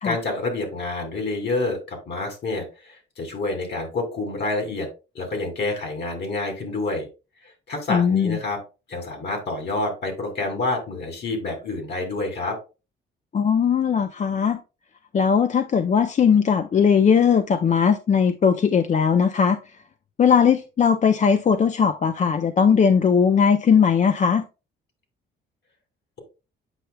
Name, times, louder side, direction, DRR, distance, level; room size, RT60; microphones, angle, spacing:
voice 1, 0.0-4.9 5.1-7.1 7.4-8.6 8.9-12.6, left 2 dB, 60° left, 3 dB, 2.7 m, -28 dB
voice 2, 7.9-8.4 13.3-14.6 15.1-19.6 20.2-24.4, left 6 dB, 35° left, 9 dB, 0.5 m, -19 dB
8.0 x 5.5 x 2.3 m, 0.30 s
cardioid pair, 90°, 20 cm